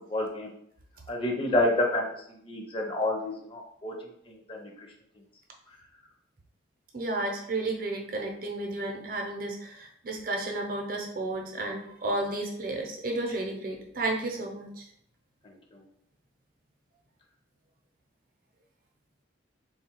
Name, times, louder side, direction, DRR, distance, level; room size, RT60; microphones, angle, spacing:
voice 1, 0.1-0.5 1.1-2.1 2.5-3.9 4.5-4.7, left 1 dB, 30° left, 1 dB, 0.7 m, -28 dB
voice 2, 6.9-14.9, right 2 dB, 45° right, 1 dB, 0.8 m, -32 dB
3.6 x 2.4 x 4.5 m, 0.70 s
head